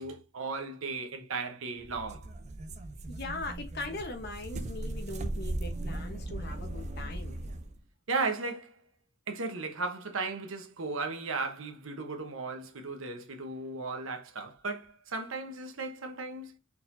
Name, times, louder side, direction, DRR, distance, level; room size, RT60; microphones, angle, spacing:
voice 1, 0.0-2.3 8.1-8.9 9.3-16.6, right 3 dB, 75° right, 0.9 m, -36 dB
sound 1, 1.8-7.8, right 1 dB, 35° right, 0.4 m, -38 dB
voice 2, 3.1-7.4, left 2 dB, 50° left, 1.1 m, -40 dB
4.3 x 4.0 x 2.6 m
head